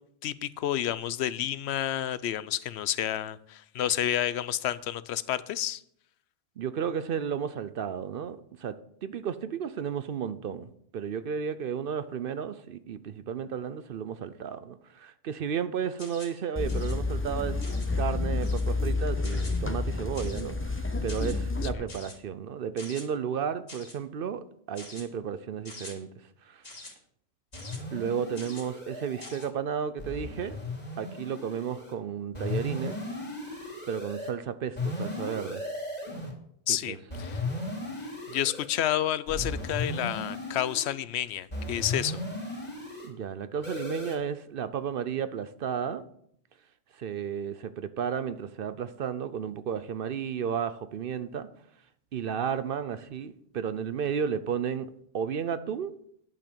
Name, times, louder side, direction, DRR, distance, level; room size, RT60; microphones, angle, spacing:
voice 1, 0.2-5.8 36.7-37.4 38.0-42.2, left 11 dB, 85° left, 17 dB, 0.9 m, -30 dB
voice 2, 6.6-10.7 10.9-17.6 18.0-26.1 26.4-26.6 27.9-30.6 31.0-33.0 33.9-35.6 36.7-37.0 43.0-46.0 46.9-51.5 52.1-55.9, right 7 dB, 65° right, 13 dB, 0.7 m, -33 dB
sound 1, 16.0-16.4 16.7-17.0 17.6-17.9 18.4-18.7 19.2-19.6 20.2-20.5 21.1-21.4 21.9-22.2 22.8-23.1 23.7-24.0 24.8-25.1 25.7-25.9 26.6-26.9 27.5-27.8 28.4-28.7 29.2-29.5, left 2 dB, 70° left, 2.6 m, -45 dB
sound 2, 16.6-21.7, left 3 dB, 15° left, 0.8 m, -29 dB
sound 3, 27.5-29.5 30.0-31.9 32.3-34.3 34.8-36.3 37.1-38.7 39.3-40.9 41.5-43.1 43.6-44.2, left 2 dB, 40° left, 2.9 m, -36 dB
10.5 x 5.8 x 6.8 m, 0.69 s
omnidirectional pair, 1.1 m